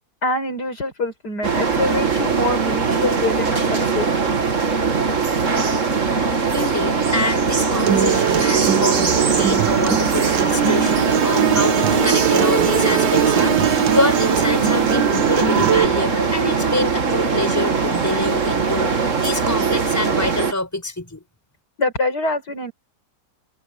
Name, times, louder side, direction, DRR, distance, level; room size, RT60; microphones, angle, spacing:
voice 1, 0.2-4.1 21.8-22.7, left 2 dB, 60° left, 5.8 m, -24 dB
sound 1, 1.4-20.5, right 5 dB, 40° right, 2.2 m, -21 dB
voice 2, 6.5-21.2, left 2 dB, 10° left, 4.3 m, -26 dB
Acoustic guitar, 7.9-15.9, right 8 dB, 80° right, 1.9 m, -23 dB
sound 2, 10.5-15.3, right 8 dB, 60° right, 1.9 m, -23 dB
omnidirectional pair, 2.0 m